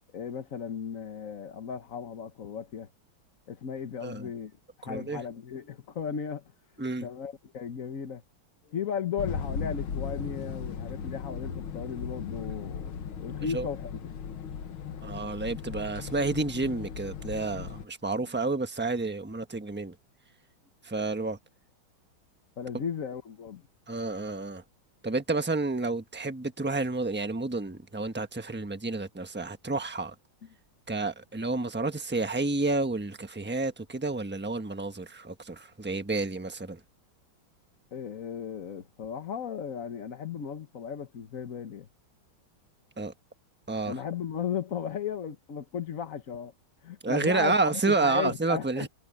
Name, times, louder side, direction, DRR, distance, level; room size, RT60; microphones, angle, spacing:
voice 1, 0.1-2.9 3.5-4.5 4.8-6.4 7.0-8.2 8.6-14.1 18.2-18.3 22.6-23.6 37.9-41.9 43.9-46.5 46.8-48.9, left 7 dB, 45° left, 1.4 m, -36 dB
voice 2, 4.8-5.2 6.8-7.1 13.5-13.7 15.0-19.9 20.8-21.4 23.9-24.6 25.0-30.1 30.9-36.8 43.0-43.1 43.7-43.9 47.0-48.9, right 3 dB, 10° right, 0.8 m, -30 dB
sound 1, 9.2-17.9, left 6 dB, 85° left, 2.2 m, -37 dB
omnidirectional pair, 2.2 m